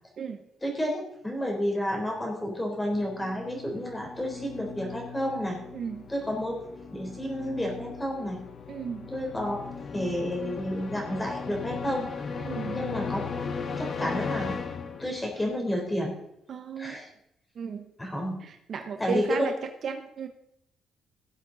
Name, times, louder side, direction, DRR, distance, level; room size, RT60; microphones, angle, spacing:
voice 1, 0.6-0.9 1.2-5.6 6.1-6.6 6.9-8.4 9.1-9.6 9.9-12.1 12.7-13.2 13.7-14.6 15.0-16.2 16.8-17.1 18.0-18.4 18.8-19.5, equal, 10° left, 0 dB, 3.7 m, -30 dB
sound 1, 2.8-15.4, left 5 dB, 40° left, 1.1 m, -37 dB
voice 2, 5.7-6.1 8.7-9.1 12.4-12.8 16.5-17.0 17.6-17.8 18.4-20.3, right 6 dB, 50° right, 7 dB, 1.0 m, -34 dB
18.0 x 7.5 x 4.0 m, 0.78 s
cardioid pair, 135°, 0 cm